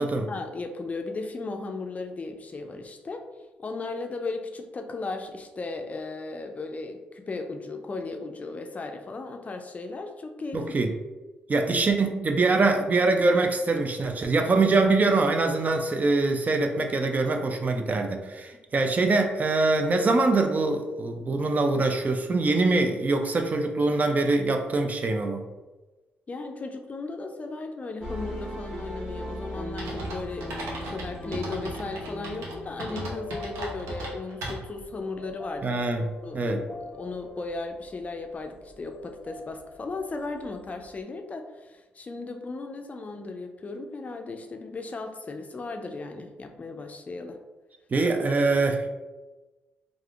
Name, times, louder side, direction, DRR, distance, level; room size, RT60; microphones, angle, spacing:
voice 1, 0.0-3.2 3.6-10.6 26.3-35.7 36.2-47.4, left 3 dB, 35° left, 5 dB, 0.4 m, -36 dB
voice 2, 10.5-10.9 11.5-25.4 35.6-36.6 47.9-49.0, right 3 dB, 40° right, 5 dB, 0.4 m, -24 dB
sound 1, 28.0-41.0, left 1 dB, 15° right, 0.8 m, -41 dB
sound 2, 29.8-34.9, right 1 dB, 90° right, 0.7 m, -36 dB
3.3 x 2.5 x 2.4 m, 1.2 s
supercardioid pair, 65°, 4 cm